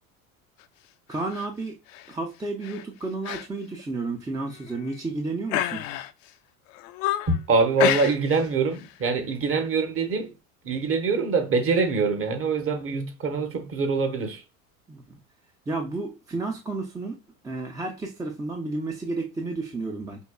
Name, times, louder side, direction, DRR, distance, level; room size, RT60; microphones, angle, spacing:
sound 1, 1.1-1.5 1.9-2.1 2.6-2.8 3.2-3.5 3.8-3.9 4.5-5.0 5.5-6.3 6.7-7.4 7.8-8.5 8.7-9.0, left 13 dB, 65° left, 0.5 m, -29 dB
voice 1, 1.1-1.8 2.1-5.8 14.9-15.2 15.7-17.2 17.4-20.2, right 3 dB, 10° right, 0.4 m, -32 dB
voice 2, 7.3-10.3 10.6-14.4, right 4 dB, 30° right, 0.9 m, -24 dB
5.3 x 2.2 x 2.2 m
hypercardioid pair, 80°, 43 cm